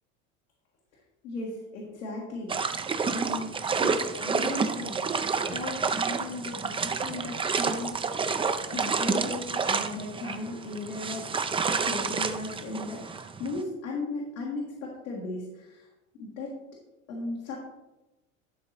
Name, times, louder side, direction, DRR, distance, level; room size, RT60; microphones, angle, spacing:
voice 1, 1.2-3.5 3.8-3.9 4.2-5.0 5.4-7.3 7.6-8.4 8.7-11.2 11.7-15.9 16.2-16.5 17.1-17.6, left 2 dB, 80° left, -2 dB, 1.8 m, -36 dB
sound 1, 2.5-13.6, right 5 dB, 15° right, 0.5 m, -29 dB
11.5 x 3.9 x 4.3 m, 1.0 s
hypercardioid pair, 85°, 41 cm